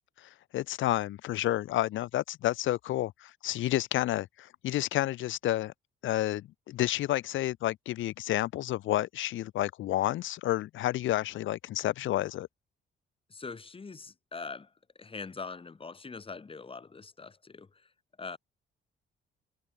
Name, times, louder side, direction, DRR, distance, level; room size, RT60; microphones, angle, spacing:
voice 1, 0.2-5.7 6.0-12.5, left 14 dB, 80° left, 0.9 m, -30 dB
voice 2, 13.3-14.7 15.0-17.9 18.2-18.4, left 4 dB, 25° left, 1.8 m, -42 dB
cardioid pair, 90°, 20 cm